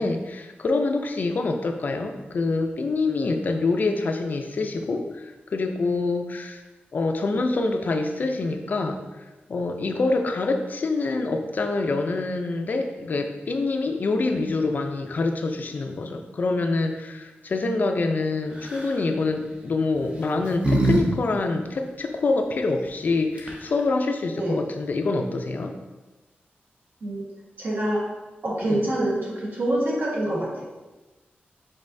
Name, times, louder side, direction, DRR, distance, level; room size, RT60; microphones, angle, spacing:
voice 1, 0.0-6.6 6.9-9.2 9.5-25.7 28.6-28.9, left 3 dB, 50° left, 5 dB, 0.3 m, -26 dB
sound 1, 18.6-19.0 19.9-21.0 21.3-21.4 23.1-23.2 23.4-23.8, right 1 dB, 30° right, 0.6 m, -24 dB
voice 2, 27.6-28.0 28.4-30.6, right 1 dB, 55° right, -5 dB, 1.2 m, -25 dB
5.3 x 3.9 x 2.6 m, 1.1 s
wide cardioid pair, 175°, 4 cm